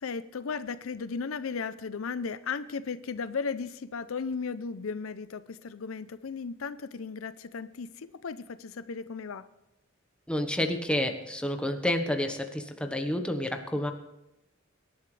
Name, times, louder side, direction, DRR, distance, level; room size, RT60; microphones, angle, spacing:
voice 1, 0.0-9.5, left 5 dB, 80° left, 14 dB, 0.6 m, -35 dB
voice 2, 10.3-13.9, left 1 dB, 5° left, 5 dB, 1.1 m, -29 dB
24.0 x 11.0 x 3.3 m, 0.90 s
head